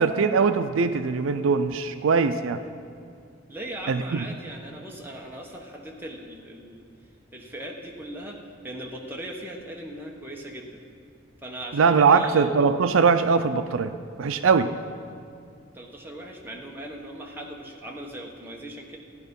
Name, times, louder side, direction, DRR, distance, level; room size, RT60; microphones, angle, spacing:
voice 1, 0.0-2.6 3.9-4.2 11.7-13.9 14.2-14.7, right 5 dB, 80° right, 10 dB, 0.5 m, -21 dB
voice 2, 3.5-6.8 7.3-8.4 8.6-10.8 11.4-12.5 15.7-19.0, right 1 dB, 10° right, -1 dB, 1.2 m, -39 dB
14.5 x 10.0 x 5.4 m, 2.3 s
head